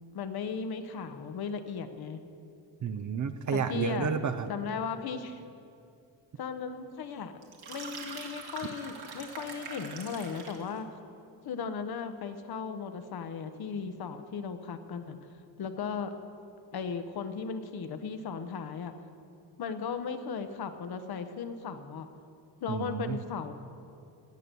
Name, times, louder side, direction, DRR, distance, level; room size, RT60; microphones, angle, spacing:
voice 1, 0.1-2.2 3.5-4.1 4.5-5.4 6.4-7.3 7.7-10.9 11.4-15.3 15.6-16.1 16.7-18.9 19.6-22.1 22.6-23.5, left 6 dB, 55° left, 8 dB, 1.0 m, -36 dB
voice 2, 2.8-4.5 22.7-23.2, right 6 dB, 45° right, 10 dB, 0.7 m, -31 dB
sound 1, 7.4-10.7, right 4 dB, 60° right, 2.1 m, -43 dB
18.0 x 7.7 x 6.9 m, 2.5 s
cardioid pair, 140°, 44 cm